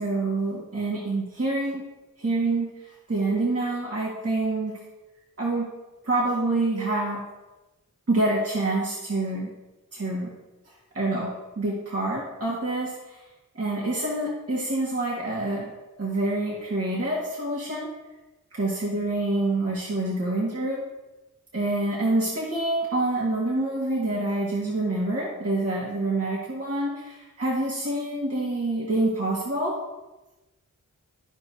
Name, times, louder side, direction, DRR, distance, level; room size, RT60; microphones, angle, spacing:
voice 1, 0.0-1.8 2.2-4.8 5.4-5.7 6.0-7.2 8.1-9.5 9.9-10.3 10.9-13.2 13.5-15.7 16.0-17.9 18.5-20.8 21.5-29.8, right 2 dB, 45° right, -4 dB, 1.7 m, -27 dB
13.5 x 4.8 x 2.7 m, 1.1 s
cardioid pair, 55°, 33 cm